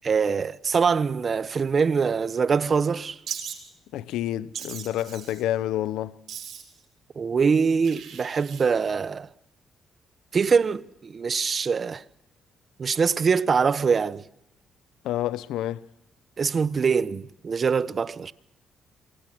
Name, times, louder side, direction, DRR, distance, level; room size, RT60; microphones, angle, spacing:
voice 1, 0.0-3.2 7.2-9.3 10.3-12.0 12.8-14.2 16.4-18.3, right 5 dB, 40° right, 1.1 m, -23 dB
Wild animals, 3.3-3.6 4.5-5.4 6.3-6.8 7.8-8.6, right 8 dB, 65° right, 6.7 m, -38 dB
voice 2, 3.9-6.1 15.0-15.9, left 13 dB, 90° left, 0.8 m, -28 dB
28.0 x 24.0 x 6.1 m
cardioid pair, 90°, 0 cm